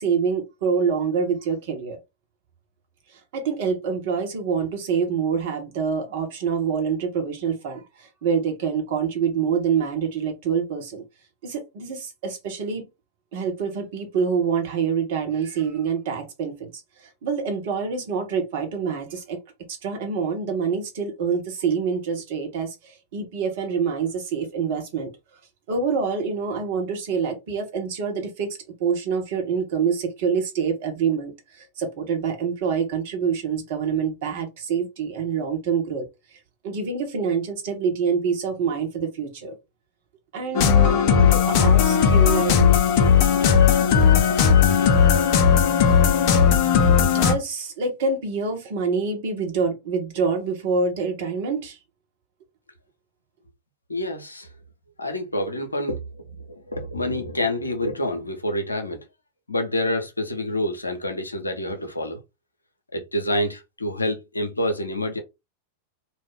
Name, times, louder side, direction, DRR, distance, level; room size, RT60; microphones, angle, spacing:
voice 1, 0.0-2.0 3.1-11.0 11.4-12.9 13.3-16.7 17.0-19.4 19.7-25.1 25.7-36.0 36.6-39.6 40.3-42.6 47.0-51.8, right 6 dB, 50° right, 1.0 m, -26 dB
sound 1, 40.5-47.4, left 7 dB, 45° left, 0.5 m, -17 dB
voice 2, 53.9-54.5 55.0-59.1 59.5-62.2 62.9-65.2, left 1 dB, 80° left, 0.6 m, -27 dB
2.4 x 2.2 x 3.4 m
figure-of-eight pair, 90°, 0 cm